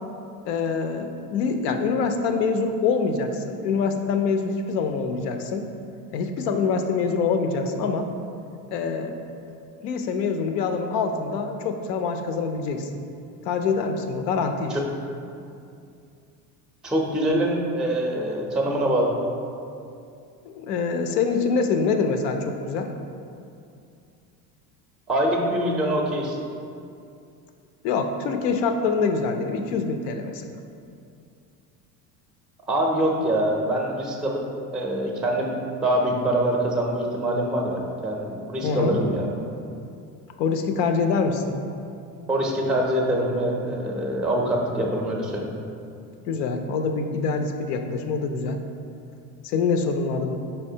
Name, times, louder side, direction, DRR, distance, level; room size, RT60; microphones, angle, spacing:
voice 1, 0.4-5.6 6.1-8.1 8.7-9.1 9.8-12.9 13.4-14.8 20.4-22.9 27.8-30.4 38.6-39.0 40.4-41.4 46.3-48.6 49.4-50.4, left 5 dB, 90° left, 6 dB, 0.6 m, -25 dB
voice 2, 16.8-19.1 25.1-26.4 32.7-34.4 34.7-35.6 35.8-39.3 42.3-45.5, right 1 dB, ahead, 0 dB, 0.4 m, -24 dB
4.4 x 4.1 x 2.7 m, 2.5 s
supercardioid pair, 85°, 48 cm